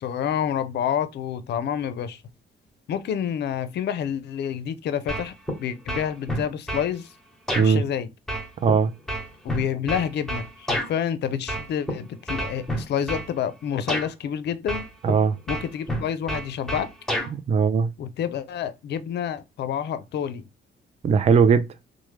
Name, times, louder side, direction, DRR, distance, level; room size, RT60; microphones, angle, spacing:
voice 1, 0.0-2.2 2.9-5.3 5.6-7.1 7.6-8.1 9.4-14.9 15.5-16.9 18.0-20.4, left 9 dB, 60° left, 0.4 m, -28 dB
sound 1, 5.1-5.6 5.9-6.9 7.5-7.7 8.3-10.9 11.5-11.9 12.3-13.3 13.9-14.1 14.7-15.2 15.5-17.3, equal, ahead, 0.9 m, -28 dB
voice 2, 15.0-15.4 17.3-17.9 21.0-21.7, right 6 dB, 35° right, 0.4 m, -19 dB
3.0 x 2.1 x 3.2 m
cardioid pair, 90°, 20 cm